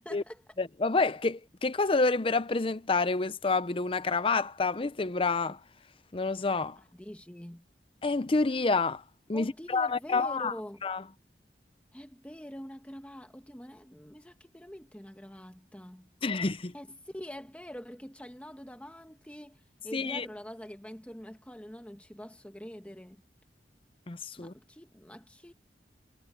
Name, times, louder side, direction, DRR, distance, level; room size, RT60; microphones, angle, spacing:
voice 1, 0.0-0.5 6.9-7.7 9.3-10.8 11.9-16.1 16.7-23.2 24.4-25.5, equal, 10° left, 1.3 m, -45 dB
voice 2, 0.6-5.6 6.1-6.8 8.0-9.0 9.3-10.5 10.8-11.0 16.2-16.7 19.9-20.2 24.1-24.5, left 3 dB, 30° left, 0.6 m, -28 dB
head